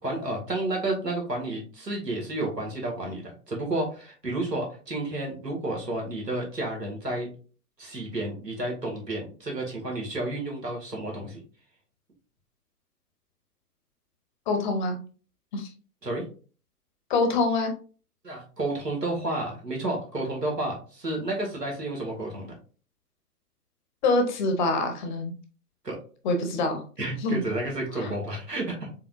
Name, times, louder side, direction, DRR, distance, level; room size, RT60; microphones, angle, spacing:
voice 1, 0.0-7.3 7.8-11.4 16.0-16.2 18.2-22.5 25.8-26.0 27.0-28.8, right 2 dB, 90° right, -1 dB, 2.0 m, -31 dB
voice 2, 14.5-15.0 15.5-15.7 17.1-17.7 24.0-25.3 26.2-26.8 27.2-27.4 28.0-28.1, left 3 dB, 30° left, 5 dB, 0.8 m, -25 dB
4.6 x 3.8 x 2.5 m, 0.38 s
figure-of-eight pair, 120°, 48 cm